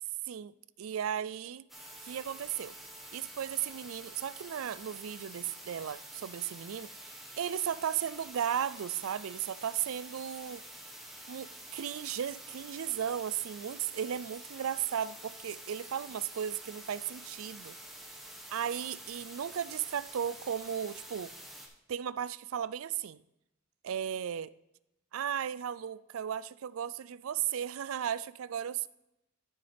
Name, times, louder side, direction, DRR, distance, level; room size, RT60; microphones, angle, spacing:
voice 1, 0.3-1.7 2.0-2.7 3.1-6.9 7.4-10.6 11.3-17.7 18.5-21.3 21.9-23.2 23.8-24.5 25.1-28.9, right 9 dB, 75° right, 0.4 m, -35 dB
sound 1, 1.7-21.7, right 1 dB, ahead, 1.4 m, -48 dB
13.0 x 7.0 x 3.4 m
head